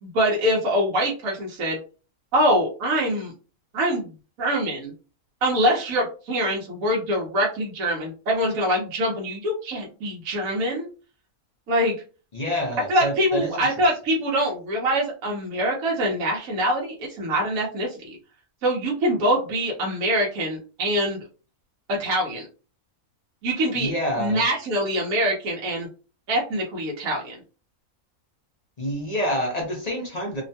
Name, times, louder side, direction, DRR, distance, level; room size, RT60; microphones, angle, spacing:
voice 1, 0.0-1.8 2.3-3.3 3.7-4.1 4.4-4.9 5.4-10.9 11.7-11.9 12.9-18.2 18.6-21.2 21.9-22.5 23.4-23.9 24.2-25.9 26.3-27.4, equal, 75° right, -2 dB, 1.2 m, -24 dB
voice 2, 12.3-13.8 23.7-24.4 28.8-30.4, equal, 50° left, 0 dB, 0.5 m, -27 dB
2.9 x 2.1 x 2.7 m, 0.35 s
omnidirectional pair, 1.5 m